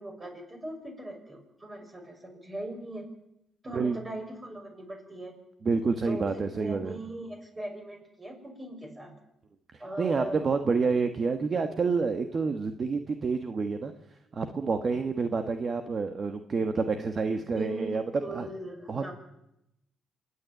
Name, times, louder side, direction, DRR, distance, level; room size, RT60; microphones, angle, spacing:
voice 1, 0.0-3.1 3.6-5.3 6.0-9.1 9.8-10.5 16.8-17.0 17.4-19.1, right 1 dB, 20° right, 2 dB, 6.6 m, -40 dB
voice 2, 5.6-7.0 10.0-13.9 14.3-18.0 18.3-18.5 18.9-19.1, right 4 dB, 40° right, 8 dB, 1.4 m, -28 dB
27.5 x 9.9 x 9.6 m, 0.86 s
cardioid pair, 90°, 0 cm